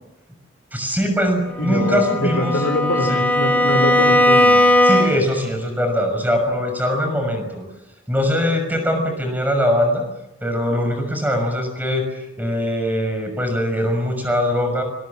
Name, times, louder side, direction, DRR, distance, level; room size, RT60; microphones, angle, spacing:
voice 1, 0.7-2.6 3.0-3.2 4.8-7.6 8.1-10.0 10.4-14.8, equal, 10° right, 4 dB, 6.4 m, -21 dB
voice 2, 1.6-4.6, left 1 dB, 90° left, 7 dB, 4.4 m, -23 dB
Bowed string instrument, 1.6-5.4, left 1 dB, 10° left, 3.3 m, -17 dB
25.0 x 22.5 x 7.5 m, 0.94 s
head